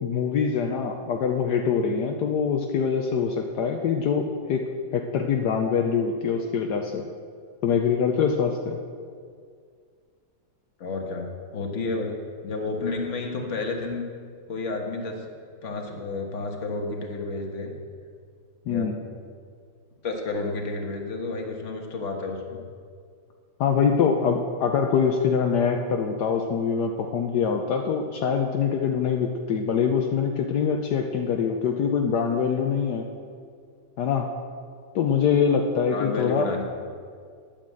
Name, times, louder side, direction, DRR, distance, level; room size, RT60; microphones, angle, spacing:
voice 1, 0.0-4.6 4.9-7.0 7.6-8.8 18.7-18.9 23.6-33.1 34.0-34.3 34.9-36.5, left 6 dB, 75° left, 3 dB, 1.3 m, -24 dB
voice 2, 10.8-14.0 14.5-15.2 15.6-17.7 18.7-18.9 20.0-22.6 35.9-36.6, left 3 dB, 45° left, 2 dB, 1.7 m, -31 dB
10.0 x 8.9 x 7.7 m, 2.1 s
omnidirectional pair, 1.8 m